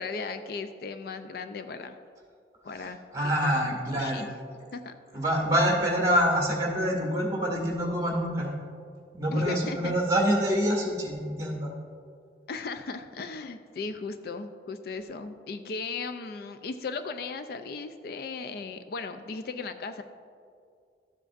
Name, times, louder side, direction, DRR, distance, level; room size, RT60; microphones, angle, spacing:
voice 1, 0.0-2.0 2.6-3.0 3.2-4.3 4.7-4.9 9.3-9.9 12.5-20.0, left 4 dB, 60° left, 9 dB, 0.4 m, -37 dB
voice 2, 2.8-4.2 5.1-8.5 9.1-11.7, equal, 20° right, -2 dB, 1.8 m, -26 dB
13.5 x 7.6 x 2.5 m, 2.3 s
head